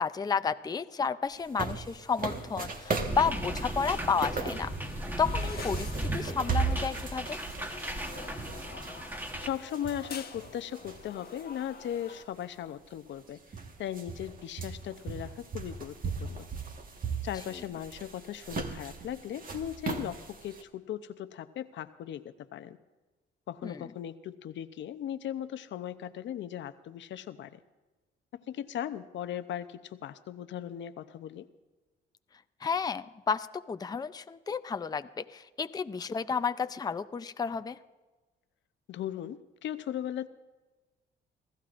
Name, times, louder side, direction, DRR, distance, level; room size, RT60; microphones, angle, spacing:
voice 1, 0.0-4.7 5.2-7.4 23.6-23.8 32.6-37.8, left 6 dB, 20° left, 10 dB, 0.5 m, -31 dB
sound 1, 1.3-11.4 11.8-11.9 12.8-12.9 13.2-20.6, right 5 dB, 45° right, 1.5 m, -38 dB
sound 2, 2.2-12.2, left 6 dB, 50° left, 1.2 m, -48 dB
sound 3, 3.1-9.5, right 1 dB, 10° right, 1.3 m, -36 dB
voice 2, 9.4-13.4 13.8-16.5 17.2-22.8 23.5-27.6 28.3-31.5 38.9-40.3, left 10 dB, 70° left, 11 dB, 0.7 m, -38 dB
28.0 x 14.5 x 2.5 m, 1.2 s
cardioid pair, 90°, 20 cm